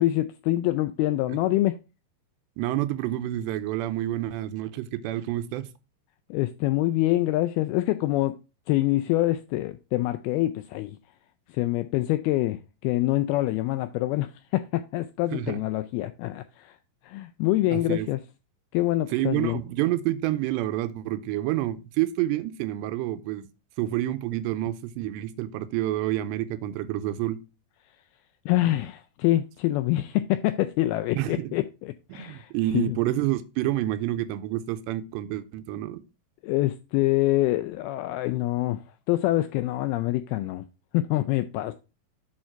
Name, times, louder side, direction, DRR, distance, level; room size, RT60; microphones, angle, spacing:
voice 1, 0.0-1.8 6.3-8.4 8.7-11.0 11.5-16.8 17.0-18.2 18.7-19.6 28.5-33.0 36.4-40.7 40.9-41.7, left 16 dB, 85° left, 2.2 m, -25 dB
voice 2, 2.6-5.7 15.3-15.6 17.7-18.1 19.1-23.5 23.8-27.4 31.2-31.5 32.1-36.0, right 14 dB, 90° right, 2.9 m, -28 dB
8.8 x 4.7 x 4.5 m
omnidirectional pair, 4.9 m